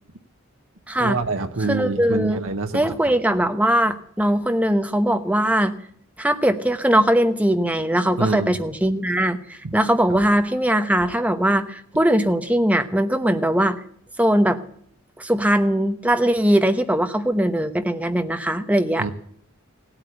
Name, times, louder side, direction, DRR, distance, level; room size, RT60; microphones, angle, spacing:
voice 1, 0.9-2.9 8.2-8.6 10.1-10.2 19.0-19.1, right 3 dB, 70° right, 5 dB, 1.0 m, -26 dB
voice 2, 1.7-2.4 2.7-5.8 6.2-13.8 14.2-14.6 15.2-19.1, right 1 dB, 5° right, 8 dB, 0.9 m, -20 dB
16.5 x 8.9 x 8.0 m, 0.63 s
head